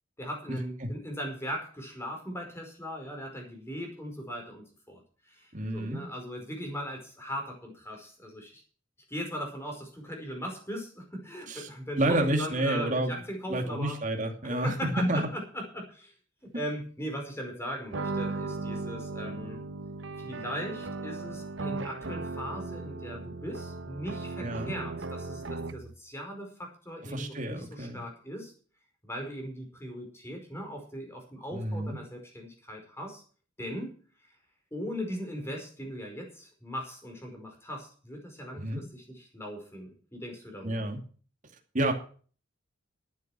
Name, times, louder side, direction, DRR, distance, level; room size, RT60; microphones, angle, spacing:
voice 1, 0.2-5.0 5.3-8.6 9.1-14.0 14.4-16.1 16.4-19.6 20.2-28.5 29.0-33.2 33.6-33.9 34.7-40.8, equal, 15° left, 2 dB, 5.1 m, -39 dB
voice 2, 5.5-6.0 11.5-11.7 12.0-13.1 13.5-15.2 24.4-24.7 27.1-28.0 31.5-32.0 38.5-38.8 40.6-41.0 41.7-41.9, right 1 dB, 40° right, 3 dB, 2.5 m, -29 dB
sound 1, 17.9-26.0, right 3 dB, 70° right, 1.0 m, -37 dB
12.0 x 9.4 x 6.1 m, 0.41 s
head